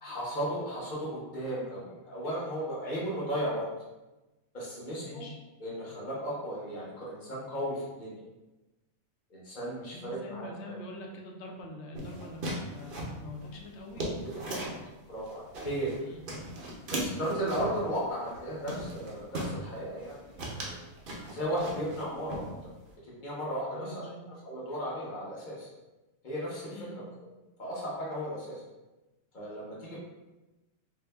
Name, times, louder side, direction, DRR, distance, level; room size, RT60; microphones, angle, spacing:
voice 1, 0.0-3.7 4.5-5.2 5.6-8.2 9.3-10.7 14.4-14.7 15.1-15.9 16.9-20.8 21.3-22.5 23.0-23.9 24.4-25.7 26.2-26.7 27.6-28.6 29.3-30.0, equal, 40° left, -5 dB, 0.9 m, -35 dB
voice 2, 5.0-5.4 9.9-14.1 16.0-16.4 23.7-24.3 26.7-27.1, left 1 dB, 65° left, 1 dB, 0.8 m, -44 dB
sound 1, 11.9-14.9 15.3-16.0 16.3-17.8 18.3-18.4 18.7-19.6 20.0-20.1 20.4-22.0 22.3-22.9, right 1 dB, 55° right, 0.6 m, -37 dB
2.7 x 2.5 x 3.3 m, 1.1 s
omnidirectional pair, 1.4 m